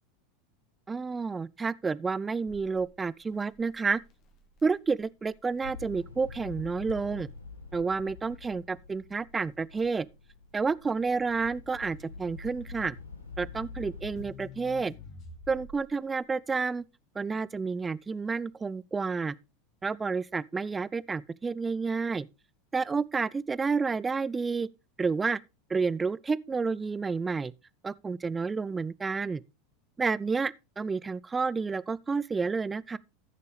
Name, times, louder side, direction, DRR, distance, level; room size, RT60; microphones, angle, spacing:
voice 1, 0.9-4.0 4.6-7.3 7.7-10.1 10.5-13.0 13.4-14.9 15.5-16.8 17.2-19.4 19.8-22.3 22.7-24.7 25.0-25.4 25.7-27.5 27.8-29.4 30.0-33.0, right 4 dB, 15° right, 0.4 m, -30 dB
Crackle, 2.5-16.0, left 4 dB, 45° left, 2.3 m, -52 dB
sound 1, 5.6-14.3, left 4 dB, 85° left, 1.7 m, -45 dB
15.0 x 6.7 x 3.3 m
figure-of-eight pair, 80°, 0 cm